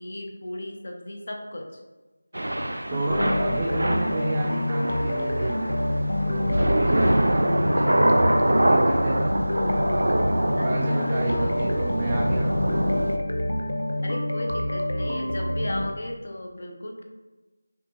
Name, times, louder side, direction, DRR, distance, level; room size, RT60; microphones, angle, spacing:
voice 1, 0.0-1.7 2.7-3.0 10.6-11.5 14.0-17.0, left 1 dB, 50° left, 2 dB, 0.8 m, -36 dB
Thunder / Rain, 2.3-13.2, right 1 dB, 75° right, 0.5 m, -24 dB
voice 2, 2.9-5.7 6.3-9.4 10.6-12.8, right 2 dB, 20° right, -4 dB, 0.5 m, -30 dB
sound 1, 3.1-15.9, left 1 dB, 80° left, 0.6 m, -27 dB
5.9 x 2.5 x 2.9 m, 1.2 s
figure-of-eight pair, 170°, 0 cm